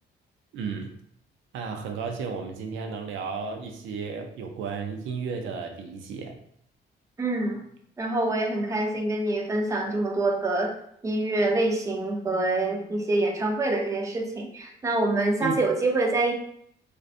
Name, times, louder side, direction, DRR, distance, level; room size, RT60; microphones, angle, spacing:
voice 1, 0.5-0.9 1.5-6.4 15.4-15.6, right 5 dB, 80° right, 4 dB, 0.4 m, -33 dB
voice 2, 7.2-7.6 8.0-10.7 11.0-16.3, right 2 dB, 15° right, 2 dB, 0.4 m, -26 dB
2.5 x 2.2 x 2.4 m, 0.68 s
cardioid pair, 90°, 20 cm